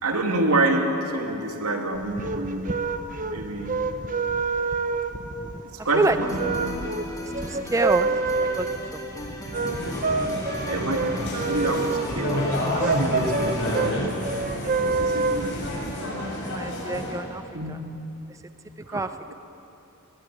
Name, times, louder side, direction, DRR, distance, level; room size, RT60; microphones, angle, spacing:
voice 1, 0.0-2.7 3.3-3.7 5.6-6.7 10.0-10.1 10.7-11.9 12.1-14.2 14.8-16.3 16.8-16.9 17.5-17.8 18.9-19.1, right 2 dB, 85° right, 3 dB, 2.7 m, -28 dB
sound 1, 1.9-15.9, right 4 dB, 35° right, 1.0 m, -28 dB
sound 2, 6.2-13.9, left 1 dB, 15° left, 2.8 m, -37 dB
voice 2, 7.4-8.1 8.4-9.3 16.5-17.4 17.7-17.8 18.9-19.1, right 2 dB, 15° right, 10 dB, 0.5 m, -26 dB
sound 3, 9.5-17.1, left 1 dB, 55° left, 7.6 m, -30 dB
21.5 x 21.5 x 9.3 m, 2.9 s
head